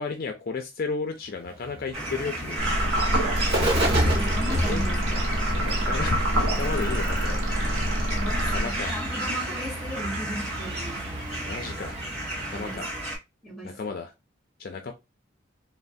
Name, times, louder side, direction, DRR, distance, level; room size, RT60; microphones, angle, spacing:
voice 1, 0.0-3.1 4.6-4.9 5.4-7.4 7.7-9.0 11.5-12.0 12.4-13.0 13.6-14.1 14.6-14.9, left 4 dB, 45° left, 0.4 m, -34 dB
Bird, 1.4-12.9, right 1 dB, 50° right, 0.9 m, -32 dB
sound 1, 1.9-13.2, right 1 dB, 30° right, 1.4 m, -33 dB
sound 2, 2.6-9.1, equal, 80° right, 1.0 m, -27 dB
voice 2, 4.1-5.5 8.1-11.0 12.5-12.9 13.4-13.8, equal, ahead, 1.0 m, -36 dB
3.2 x 2.1 x 2.5 m
head